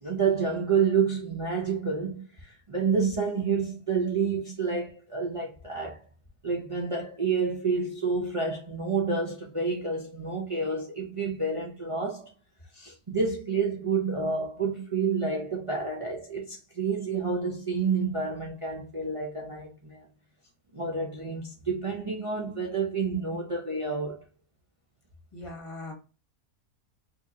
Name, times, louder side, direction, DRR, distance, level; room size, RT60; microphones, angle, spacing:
voice 1, 0.0-6.0 6.4-12.3 12.7-20.1 20.7-24.2, right 5 dB, 50° right, 0.4 m, -29 dB
voice 2, 25.3-25.9, left 2 dB, 25° left, 1.0 m, -40 dB
2.9 x 2.8 x 3.7 m
omnidirectional pair, 1.6 m